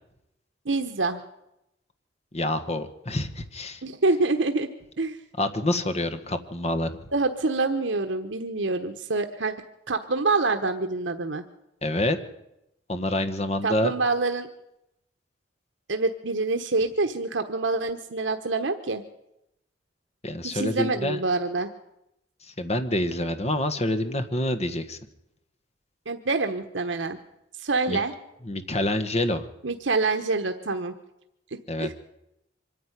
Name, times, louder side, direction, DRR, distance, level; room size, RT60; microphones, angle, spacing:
voice 1, 0.6-1.2 3.8-4.7 5.0-5.2 7.1-9.5 9.9-11.4 13.6-14.5 15.9-19.0 20.5-21.7 26.1-27.2 27.6-28.1 29.6-30.9 31.8-31.9, right 3 dB, 85° right, 6 dB, 1.2 m, -26 dB
voice 2, 2.3-3.8 5.4-6.9 11.8-12.2 12.9-13.9 20.2-21.2 22.4-25.0 27.9-28.0 28.4-29.5 31.7-31.9, left 1 dB, 35° left, 8 dB, 1.5 m, -27 dB
25.0 x 10.5 x 9.9 m, 0.87 s
head